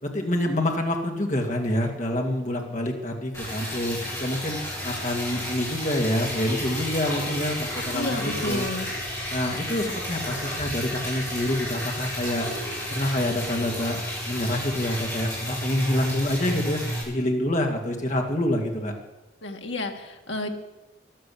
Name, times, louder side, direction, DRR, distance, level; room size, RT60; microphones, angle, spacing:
voice 1, 0.0-4.6 4.8-8.7 9.3-12.5 12.9-18.9, left 1 dB, 40° left, 2 dB, 2.3 m, -27 dB
Liquid, 3.3-17.0, equal, 15° left, 7.9 m, -32 dB
voice 2, 7.9-8.9 19.4-20.5, left 1 dB, 70° left, 3 dB, 2.0 m, -31 dB
14.5 x 11.5 x 8.6 m, 1.0 s
head